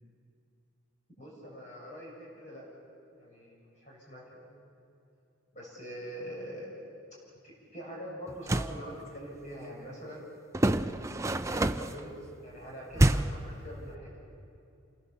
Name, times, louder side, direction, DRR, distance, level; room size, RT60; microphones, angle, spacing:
voice 1, 1.2-2.6 3.2-4.5 5.5-6.7 7.4-10.2 11.1-12.1 12.4-14.1, equal, 35° left, -4 dB, 6.5 m, -44 dB
sound 1, 8.3-8.8 10.5-12.0 12.9-13.5, right 1 dB, 15° right, 0.5 m, -26 dB
28.5 x 21.0 x 7.1 m, 2.7 s
head